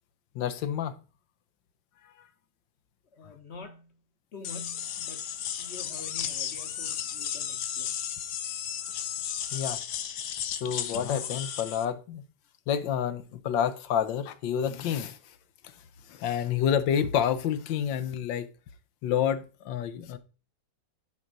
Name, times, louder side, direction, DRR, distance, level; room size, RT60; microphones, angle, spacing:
voice 1, 0.3-1.0 9.5-9.8 10.5-12.2 12.7-15.2 16.1-18.5 19.0-20.2, left 9 dB, 90° left, 1.5 m, -29 dB
voice 2, 3.1-4.0 4.3-8.0, left 3 dB, 45° left, 1.0 m, -46 dB
sound 1, 4.4-11.9, left 9 dB, 70° left, 1.3 m, -34 dB
10.5 x 4.6 x 4.0 m
omnidirectional pair, 1.9 m